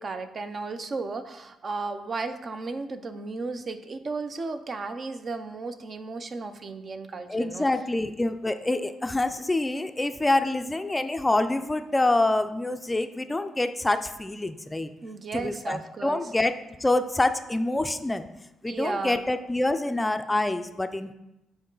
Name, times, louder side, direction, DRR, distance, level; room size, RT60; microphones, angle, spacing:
voice 1, 0.0-7.7 15.0-16.2 18.7-19.2, right 3 dB, 40° right, 10 dB, 0.6 m, -34 dB
voice 2, 7.3-14.9 15.3-16.5 16.8-18.3 18.6-21.1, left 2 dB, 15° left, 9 dB, 0.5 m, -26 dB
8.8 x 4.6 x 3.9 m, 0.92 s
cardioid pair, 90°, 0 cm